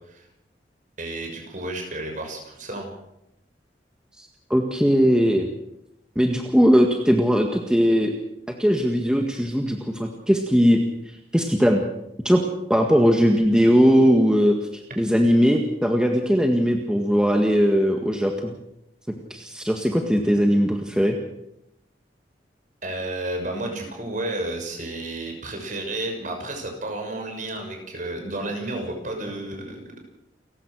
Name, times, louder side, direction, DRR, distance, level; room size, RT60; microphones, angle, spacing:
voice 1, 1.0-2.9 22.8-29.8, right 2 dB, 45° right, 3 dB, 6.3 m, -31 dB
voice 2, 4.2-5.5 6.2-8.1 8.6-10.8 11.3-11.8 12.3-12.4 12.7-14.5 15.0-18.5 19.3-21.2, equal, 5° right, 3 dB, 1.8 m, -19 dB
29.5 x 15.5 x 6.4 m, 0.83 s
head